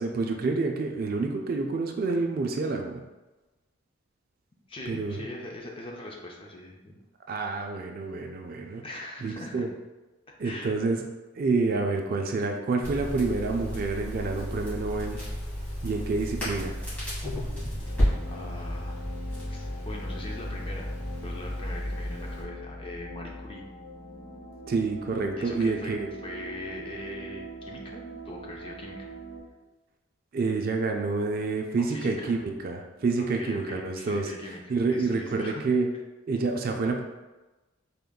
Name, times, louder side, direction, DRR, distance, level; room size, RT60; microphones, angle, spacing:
voice 1, 0.0-3.0 4.9-5.2 7.3-8.8 9.2-9.7 10.4-11.0 11.4-15.2 15.8-16.8 24.7-26.1 30.3-34.3 34.7-35.9 36.3-37.0, right 3 dB, 45° right, 3 dB, 0.3 m, -28 dB
voice 2, 4.7-7.0 8.8-9.7 10.4-10.7 18.3-19.0 19.5-23.6 25.4-26.0 26.2-29.1 31.8-32.3 33.2-35.6, left 1 dB, 25° left, -1 dB, 0.4 m, -41 dB
Crackle, 12.8-22.4, equal, 5° left, 1.5 m, -32 dB
sound 1, 17.8-29.4, right 1 dB, 60° left, 1.0 m, -42 dB
3.7 x 3.6 x 2.3 m, 1.1 s
head